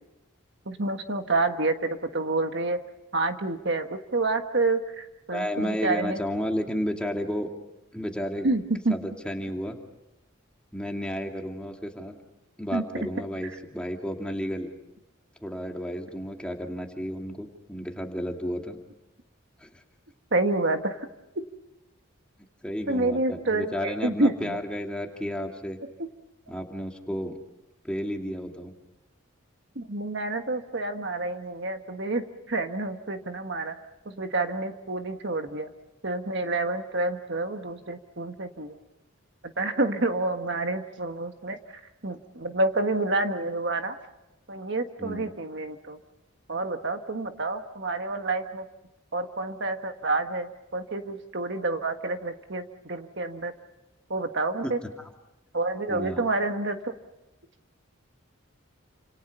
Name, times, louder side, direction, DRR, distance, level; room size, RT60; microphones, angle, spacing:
voice 1, 0.7-2.8 3.1-6.2 8.4-8.9 12.7-12.8 20.3-21.0 22.9-24.6 29.7-33.8 34.0-35.7 36.0-38.8 39.6-41.6 42.0-43.9 44.5-46.0 46.5-48.6 49.1-53.5 54.1-54.8 55.5-56.9, right 2 dB, 55° right, 6 dB, 1.4 m, -28 dB
voice 2, 5.3-7.5 7.9-8.5 8.9-9.8 10.7-12.1 12.6-14.7 15.4-18.8 19.6-19.8 22.6-25.8 26.5-27.4 27.8-28.7 45.0-45.3 54.6-54.7 55.0-55.1 55.9-56.2, equal, 5° left, 2 dB, 2.5 m, -32 dB
29.5 x 27.5 x 5.5 m, 0.97 s
head